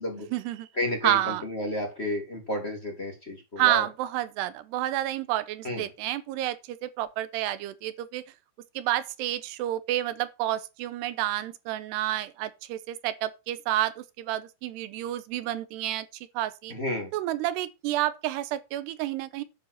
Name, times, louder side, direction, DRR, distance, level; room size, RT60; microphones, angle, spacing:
voice 1, 0.2-0.7 1.0-1.4 3.6-8.2 8.8-16.7 17.1-19.4, right 14 dB, 90° right, 2.9 m, -30 dB
voice 2, 0.8-3.8 5.6-5.8 16.7-17.1, left 1 dB, 20° left, 2.0 m, -31 dB
10.5 x 4.9 x 6.3 m
omnidirectional pair, 4.8 m